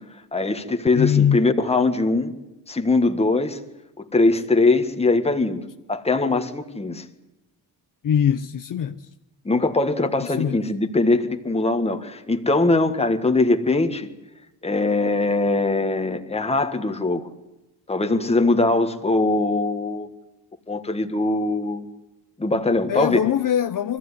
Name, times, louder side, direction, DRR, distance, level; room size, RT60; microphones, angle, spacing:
voice 1, 0.3-2.3 2.7-3.6 4.0-5.6 5.9-7.0 9.4-14.1 14.6-17.3 17.9-20.1 20.7-21.8 22.4-23.2, left 2 dB, 15° left, 1.6 m, -21 dB
voice 2, 1.0-1.5 8.0-9.0 10.2-10.6 22.9-24.0, left 9 dB, 55° left, 0.8 m, -22 dB
24.0 x 15.0 x 9.7 m
wide cardioid pair, 170°, 40 cm